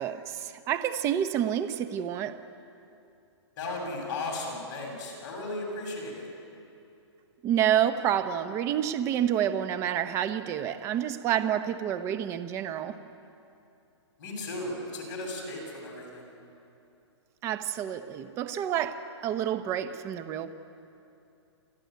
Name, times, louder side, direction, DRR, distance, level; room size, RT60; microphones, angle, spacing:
voice 1, 0.0-2.4 7.4-13.0 17.4-20.5, right 10 dB, 20° right, 11 dB, 0.8 m, -28 dB
voice 2, 3.6-6.3 14.2-16.3, left 2 dB, 40° left, 0 dB, 7.5 m, -36 dB
27.5 x 13.5 x 9.4 m, 2.7 s
hypercardioid pair, 160°, 15 cm